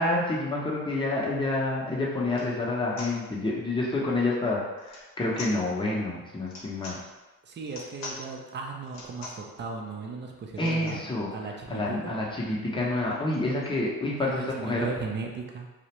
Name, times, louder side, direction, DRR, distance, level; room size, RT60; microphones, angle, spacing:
voice 1, 0.0-7.0 10.6-14.9, left 2 dB, 15° left, -4 dB, 0.7 m, -28 dB
sound 1, 1.6-1.7 2.3-2.5 3.0-3.1 4.8-5.1 5.3-5.6 6.4-7.0 7.6-8.2 8.8-9.5 10.5-11.0 11.6-11.7 11.8-12.0 12.3-13.7, left 2 dB, 60° left, 0.7 m, -43 dB
voice 2, 7.4-12.2 14.2-15.7, right 4 dB, 35° right, 1 dB, 0.5 m, -37 dB
2.4 x 2.1 x 2.9 m, 1.1 s
cardioid pair, 90°, 30 cm